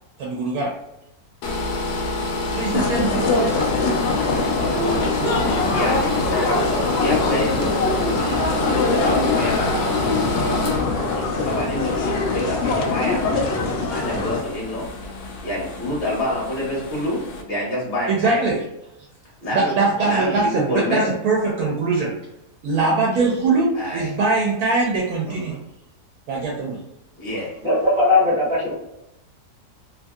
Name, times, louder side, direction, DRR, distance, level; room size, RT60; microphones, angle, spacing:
voice 1, 0.2-0.7 2.5-3.3 5.2-5.5 18.1-18.6 19.5-22.1 22.6-25.6 26.3-26.8, right 3 dB, 80° right, -2 dB, 1.1 m, -22 dB
sound 1, 1.4-17.4, left 2 dB, 80° left, 1.1 m, -28 dB
sound 2, 2.7-14.4, left 3 dB, 65° left, 0.6 m, -23 dB
voice 2, 5.4-7.8 8.2-10.6 11.4-12.0 12.3-13.2 13.9-14.9 15.4-18.4 19.4-19.7 20.0-21.1 23.7-24.1 25.2-25.6 27.2-27.5, left 1 dB, 40° left, -5 dB, 1.4 m, -27 dB
voice 3, 27.6-28.7, left 2 dB, 30° right, -12 dB, 1.5 m, -18 dB
2.9 x 2.6 x 2.2 m, 0.85 s
omnidirectional pair, 1.6 m